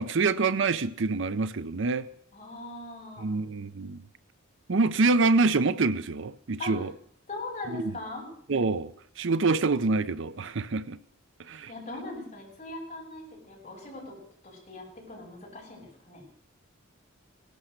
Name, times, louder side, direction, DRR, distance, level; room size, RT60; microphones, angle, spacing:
voice 1, 0.0-2.1 3.2-4.0 4.7-6.9 7.7-7.8 8.5-11.0 11.5-11.7, right 3 dB, 65° right, 0.6 m, -26 dB
voice 2, 2.3-3.4 6.6-6.8 7.3-8.3 11.7-14.2 14.4-16.2, left 2 dB, 35° left, 7.4 m, -40 dB
18.5 x 11.5 x 6.6 m
head